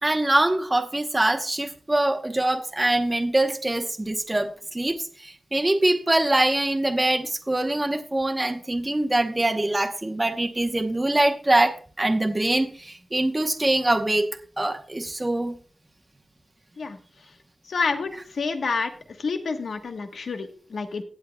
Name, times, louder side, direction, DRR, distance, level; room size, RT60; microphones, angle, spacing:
voice 1, 0.0-14.3 14.6-15.5, right 1 dB, 20° right, 5 dB, 0.9 m, -23 dB
voice 2, 17.7-18.9 19.2-21.0, left 4 dB, 85° left, 6 dB, 1.2 m, -28 dB
17.0 x 8.4 x 2.2 m, 0.41 s
wide cardioid pair, 120°, 0 cm